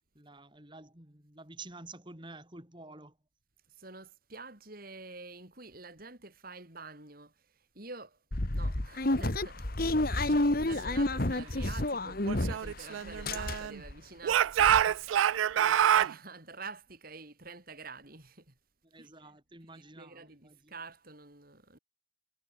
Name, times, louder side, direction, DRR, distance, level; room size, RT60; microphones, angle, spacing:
voice 1, 0.1-3.2 10.3-10.5 18.8-20.7, right 3 dB, 25° right, 4.0 m, -50 dB
voice 2, 3.7-8.2 8.5-9.7 9.9-18.6 19.0-19.4 19.7-21.8, right 3 dB, 50° right, 4.3 m, -48 dB
sound 1, 8.3-12.8 13.1-13.9 14.3-14.4 14.6-14.8, left 1 dB, 50° left, 1.8 m, -30 dB
Speech / Shout, 12.3-13.8 14.2-16.1, right 10 dB, 80° right, 0.3 m, -26 dB
head